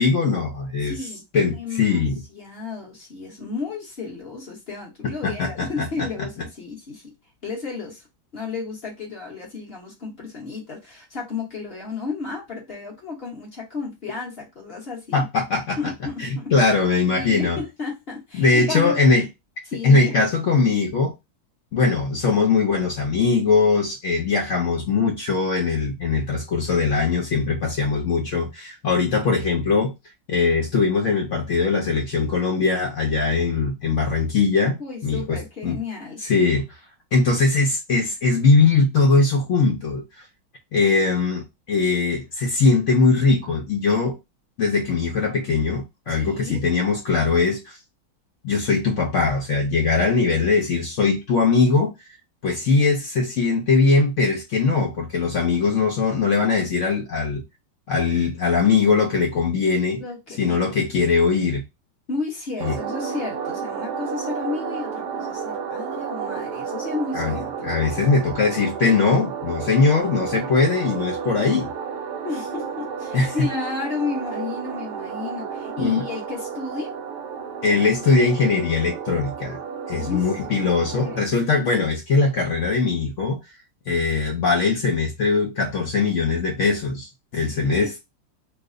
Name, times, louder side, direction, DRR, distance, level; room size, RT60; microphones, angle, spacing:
voice 1, 0.0-1.0 1.3-2.2 5.0-5.9 15.1-15.9 16.2-17.6 18.4-19.3 19.8-21.1 21.7-29.9 30.3-34.8 35.0-35.8 36.2-36.7 37.1-40.2 40.7-44.2 44.6-47.8 48.4-51.9 52.4-57.4 57.9-60.0 60.4-61.6 62.6-62.8 67.1-67.3 67.6-71.7 73.1-73.3 75.8-76.0 77.6-79.6 79.9-83.4 83.9-88.0, left 4 dB, 90° left, 0.6 m, -21 dB
voice 2, 0.8-1.2 1.5-2.0 2.3-7.1 7.4-8.0 8.3-15.2 15.8-16.5 17.0-19.0 19.7-20.2 34.8-36.2 46.1-46.6 60.0-60.7 62.1-67.7 72.2-76.9 79.9-81.3 87.3-87.9, left 4 dB, 40° left, 0.9 m, -33 dB
sound 1, 62.6-81.2, right 6 dB, 70° right, 1.0 m, -32 dB
3.1 x 2.0 x 3.6 m
omnidirectional pair, 2.0 m